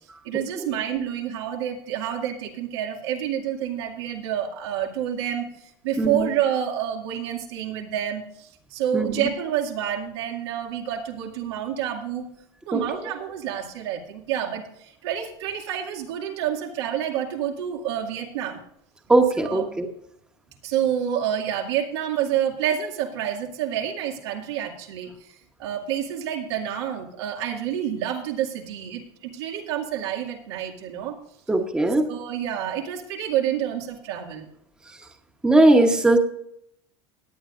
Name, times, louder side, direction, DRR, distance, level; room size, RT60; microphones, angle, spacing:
voice 1, 0.2-5.5 5.8-12.2 12.7-18.6 19.4-19.6 20.6-25.3 25.6-31.2 32.1-34.5, right 10 dB, 90° right, 2 dB, 2.2 m, -28 dB
voice 2, 6.0-6.3 8.9-9.3 12.7-12.8 19.1-19.9 31.5-32.1 35.4-36.2, right 2 dB, 5° right, 4 dB, 1.1 m, -19 dB
18.0 x 10.0 x 2.5 m, 0.73 s
supercardioid pair, 160°, 14 cm